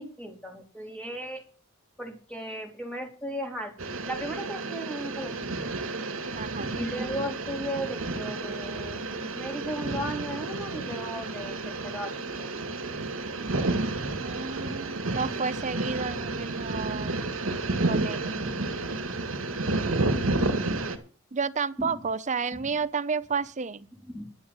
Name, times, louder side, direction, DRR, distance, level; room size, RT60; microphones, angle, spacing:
voice 1, 0.0-1.4 2.0-3.7 4.1-5.3 6.7-12.6 14.6-14.8 18.3-18.8 19.4-19.7 21.8-22.0 22.5-22.6 24.1-24.3, equal, 5° left, 3.7 m, -36 dB
sound 1, 3.8-21.0, right 2 dB, 80° right, 2.2 m, -31 dB
voice 2, 6.3-6.8 14.2-17.2 17.9-18.4 21.3-23.9, right 5 dB, 35° right, 0.7 m, -31 dB
12.0 x 7.2 x 8.0 m
head